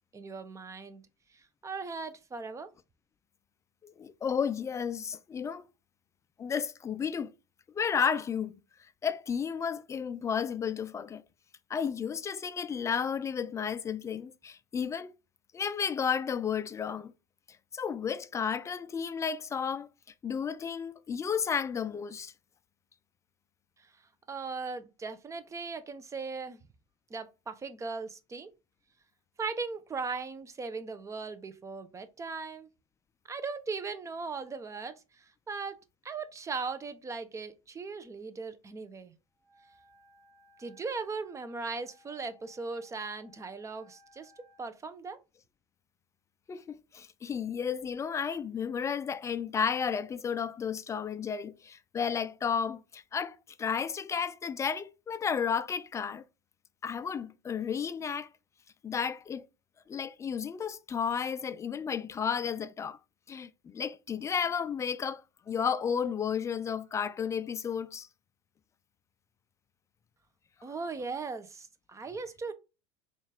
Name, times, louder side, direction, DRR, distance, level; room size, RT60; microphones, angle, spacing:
voice 1, 0.1-1.0 1.3-2.7 23.8-23.9 24.3-26.6 27.1-28.5 29.4-32.7 33.3-35.8 36.0-39.1 40.6-44.3 44.6-45.2 70.6-72.5, right 4 dB, 20° right, 0.6 m, -38 dB
voice 2, 3.8-5.6 6.4-7.3 7.7-8.6 9.0-11.2 11.7-15.1 15.5-17.1 17.7-19.9 20.2-22.3 46.5-56.2 56.8-58.3 58.8-59.5 59.9-63.0 63.3-65.2 65.5-68.1, left 7 dB, 20° left, 0.3 m, -32 dB
Wind instrument woodwind instrument, 39.4-44.7, left 2 dB, 80° right, 1.0 m, -62 dB
4.1 x 2.5 x 3.3 m
hypercardioid pair, 85°, 16 cm